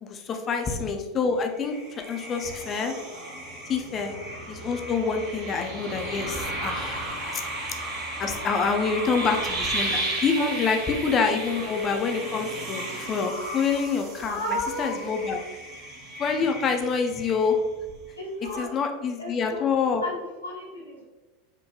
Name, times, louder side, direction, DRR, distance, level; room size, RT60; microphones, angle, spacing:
voice 1, 0.0-2.9 3.7-4.1 4.5-7.0 8.2-14.4 14.8-15.4 16.2-17.6 18.6-20.0, left 5 dB, 30° left, 4 dB, 0.5 m, -26 dB
sound 1, 1.5-17.8, right 1 dB, 45° right, 0.8 m, -34 dB
voice 2, 8.7-9.2 10.4-10.5 14.2-15.2 18.2-18.7 19.2-19.6 20.0-21.0, left 1 dB, 90° left, -5 dB, 1.0 m, -34 dB
3.8 x 2.2 x 2.9 m, 1.2 s
figure-of-eight pair, 85°, 0 cm